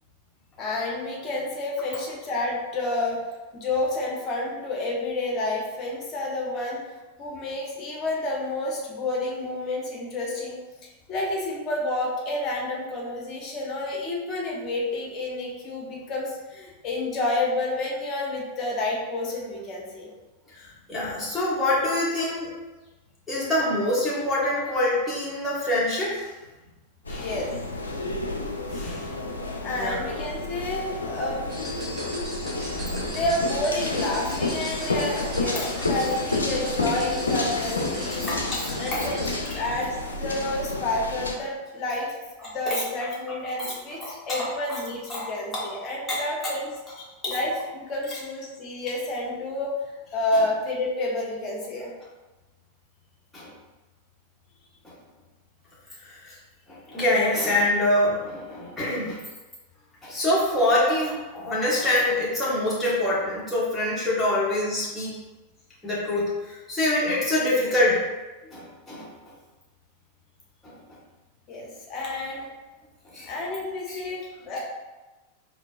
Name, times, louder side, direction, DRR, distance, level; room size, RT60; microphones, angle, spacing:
voice 1, 0.6-3.3 3.5-6.8 7.2-10.6 11.1-20.1 27.2-27.5 29.6-31.5 32.6-42.1 42.4-46.7 47.3-49.7 50.1-51.9 68.4-68.5 71.5-72.5 73.2-74.6, left 2 dB, 30° left, -2 dB, 0.9 m, -30 dB
voice 2, 20.6-22.5 23.3-26.3 27.1-27.3 28.7-29.1 29.7-30.0 33.1-33.2 35.5-35.7 38.2-39.1 39.5-39.6 42.7-42.8 44.0-44.8 45.1-45.7 46.1-46.2 47.2-47.4 53.3-53.5 54.8-54.9 56.1-56.3 56.7-59.2 60.0-65.1 65.8-68.0 68.5-69.1 70.6-70.7 73.1-73.3 73.9-74.0, left 1 dB, 10° left, -8 dB, 1.4 m, -25 dB
sound 1, 27.0-41.3, left 2 dB, 75° left, 0.4 m, -30 dB
sound 2, 31.5-39.5, equal, 15° right, 1.2 m, -39 dB
4.3 x 2.8 x 2.5 m, 1.2 s
figure-of-eight pair, 90°, 0 cm